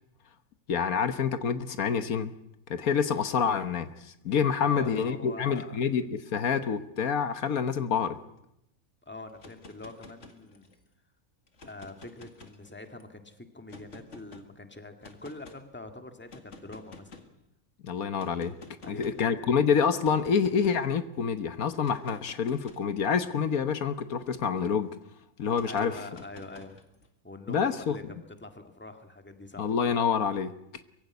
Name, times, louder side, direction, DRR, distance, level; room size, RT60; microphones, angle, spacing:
voice 1, 0.7-2.3 2.7-8.2 17.8-18.6 18.9-24.9 25.4-25.9 27.5-28.0 29.6-30.5, left 6 dB, 75° left, 11 dB, 1.5 m, -27 dB
voice 2, 4.6-5.8 9.0-10.7 11.7-17.3 18.8-19.6 25.7-26.8 27.2-29.7, left 2 dB, 5° left, 6 dB, 1.8 m, -44 dB
sound 1, 9.3-10.8 11.5-13.0 13.7-14.4 15.0-15.6 16.3-17.4 18.2-19.3 20.0-20.9 21.7-24.6 25.5-27.1, left 3 dB, 55° left, 2.3 m, -51 dB
23.5 x 16.0 x 9.5 m, 0.81 s
omnidirectional pair, 1.5 m